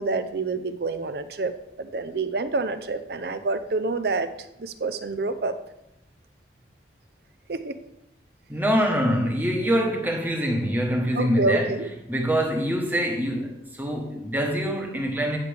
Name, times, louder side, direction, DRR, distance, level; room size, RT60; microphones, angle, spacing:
voice 1, 0.0-1.5 1.8-4.3 4.6-5.5 7.5-7.7 11.2-11.9, right 3 dB, 60° right, 0.6 m, -27 dB
voice 2, 8.5-11.7 12.1-15.4, equal, 10° right, 1.1 m, -24 dB
9.7 x 6.6 x 3.4 m
head